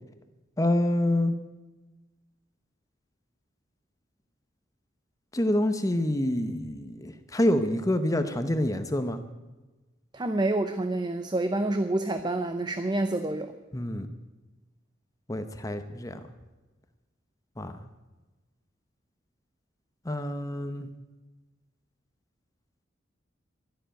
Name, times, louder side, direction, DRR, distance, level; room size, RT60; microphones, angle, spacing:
voice 1, 0.6-1.3 5.3-9.2 13.7-14.1 15.3-16.2 17.6-17.8 20.1-20.9, left 1 dB, 20° left, 9 dB, 0.8 m, -27 dB
voice 2, 10.1-13.5, right 2 dB, 25° right, 8 dB, 0.7 m, -28 dB
12.5 x 12.0 x 9.1 m, 1.2 s
head